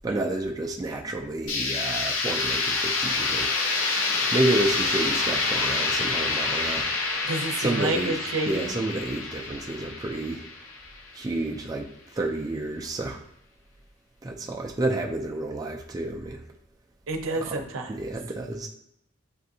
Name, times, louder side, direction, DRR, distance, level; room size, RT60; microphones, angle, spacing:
voice 1, 0.0-3.5 4.3-6.9 7.6-8.2 8.5-10.4 11.1-13.2 14.2-16.4 17.9-18.7, right 2 dB, 20° right, 0 dB, 0.3 m, -30 dB
sound 1, 1.5-11.2, left 3 dB, 85° left, 0.7 m, -27 dB
voice 2, 7.2-8.7 17.1-17.9, right 2 dB, 80° right, 4 dB, 0.6 m, -29 dB
7.5 x 2.5 x 2.7 m, 0.79 s
head